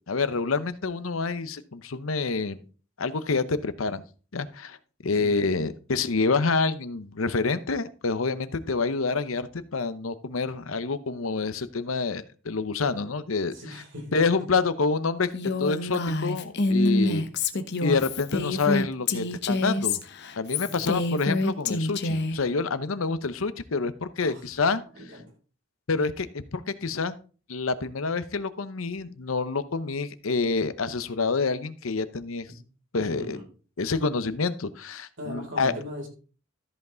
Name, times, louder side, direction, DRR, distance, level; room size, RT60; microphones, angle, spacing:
voice 1, 0.1-2.6 3.0-4.0 4.3-4.8 5.0-13.5 14.1-15.3 15.6-17.2 17.8-20.0 20.4-24.8 25.9-27.1 27.5-32.5 32.9-33.4 33.8-35.7, left 4 dB, 80° left, 13 dB, 0.8 m, -27 dB
voice 2, 13.5-14.5 17.0-17.2 20.7-21.1 24.2-24.4 24.9-25.2 32.5-32.6 33.0-33.5 35.2-36.1, equal, 60° right, 1 dB, 3.6 m, -40 dB
Female speech woman speaking, 15.3-22.4, left 2 dB, 55° left, 1.0 m, -26 dB
13.5 x 5.5 x 3.8 m, 0.37 s
head